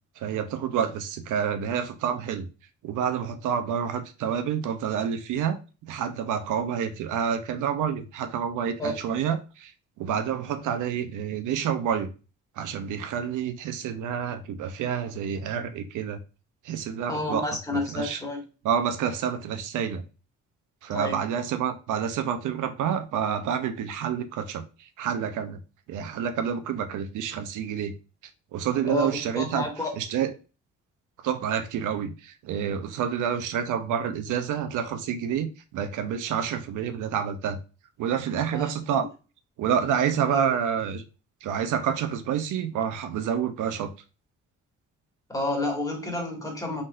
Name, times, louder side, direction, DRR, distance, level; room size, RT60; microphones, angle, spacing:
voice 1, 0.2-2.5 2.8-12.1 12.6-16.2 16.6-17.4 17.7-18.2 18.6-20.0 20.8-25.6 25.9-27.9 28.5-29.7 30.0-30.3 31.2-37.6 38.0-39.1 39.6-41.0 41.4-43.9, right 8 dB, 80° right, 0.8 m, -28 dB
voice 2, 17.1-18.4 20.9-21.2 28.9-29.1 29.3-29.9 38.5-38.7 40.3-40.5 45.3-46.8, left 2 dB, 10° left, 1.9 m, -30 dB
3.9 x 3.8 x 2.5 m
cardioid pair, 90°, 30 cm